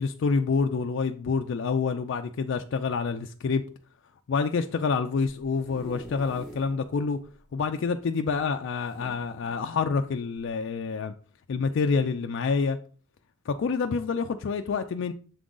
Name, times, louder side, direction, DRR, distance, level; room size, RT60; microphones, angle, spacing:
voice 1, 0.0-3.6 4.3-7.2 7.5-11.1 11.5-12.8 13.5-15.1, left 5 dB, 60° left, 0.3 m, -27 dB
sound 1, 5.2-6.8 7.2-7.3 7.5-7.6 8.7-9.7 10.4-10.5, left 1 dB, ahead, 2.2 m, -46 dB
6.9 x 3.7 x 3.8 m
head